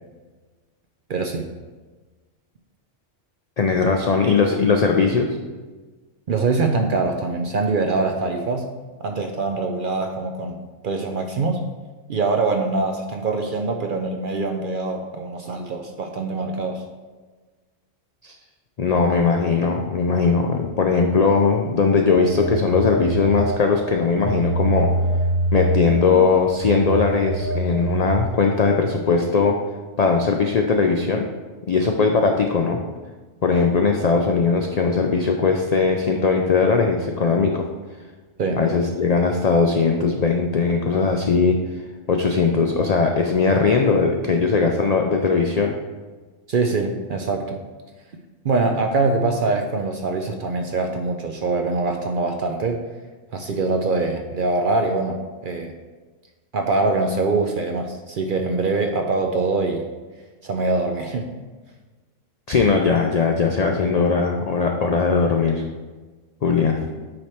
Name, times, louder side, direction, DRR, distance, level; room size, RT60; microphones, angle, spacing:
voice 1, 1.1-1.5 6.3-8.7 9.0-11.6 12.1-16.8 38.4-38.6 46.5-47.6 48.4-52.8 53.3-55.7 56.5-59.9 60.4-61.3, right 3 dB, 60° right, 4 dB, 0.5 m, -23 dB
voice 2, 3.6-5.4 18.2-18.3 18.8-24.9 25.5-29.6 30.0-31.3 31.7-32.8 33.4-37.6 38.6-41.6 42.1-45.8 62.5-65.6 66.4-66.8, left 4 dB, 80° left, 2 dB, 0.3 m, -19 dB
Telephone, 22.1-23.8 24.2-28.3, right 1 dB, 25° right, 1.3 m, -24 dB
8.7 x 3.2 x 4.3 m, 1.3 s
omnidirectional pair, 1.3 m